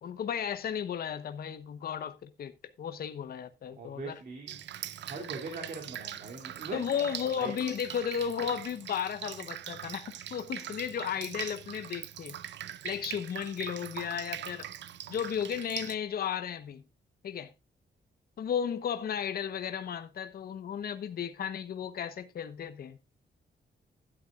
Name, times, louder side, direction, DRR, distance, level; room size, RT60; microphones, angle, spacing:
voice 1, 0.0-2.5 2.8-4.1 6.7-12.4 12.8-14.7 15.1-16.8 17.2-17.5 18.4-23.0, left 8 dB, 55° left, 1.0 m, -34 dB
voice 2, 3.8-4.7 5.0-6.8 7.4-7.5, right 4 dB, 50° right, 2.7 m, -41 dB
Drip, 4.5-16.0, right 11 dB, 70° right, 0.7 m, -42 dB
12.5 x 11.0 x 2.4 m
wide cardioid pair, 175°, 19 cm